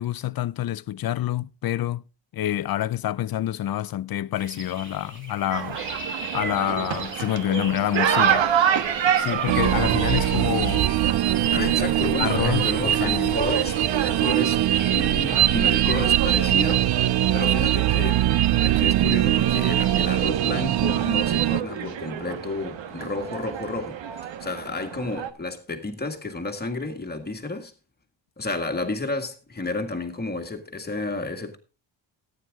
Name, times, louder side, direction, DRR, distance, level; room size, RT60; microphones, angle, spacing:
voice 1, 0.0-2.0 2.3-5.8 6.3-8.5 9.1-10.9 11.5-11.7 12.2-13.4, left 12 dB, 50° left, 0.6 m, -27 dB
sound 1, 4.4-20.1, right 1 dB, 25° right, 3.6 m, -40 dB
sound 2, 5.5-25.3, right 9 dB, 80° right, 1.3 m, -29 dB
sound 3, 9.5-21.6, right 13 dB, 55° right, 0.6 m, -22 dB
voice 2, 11.5-13.8 14.0-14.6 14.9-18.3 18.6-27.7 28.4-31.6, left 2 dB, 20° left, 1.9 m, -31 dB
14.0 x 9.6 x 3.6 m
cardioid pair, 130°, 45 cm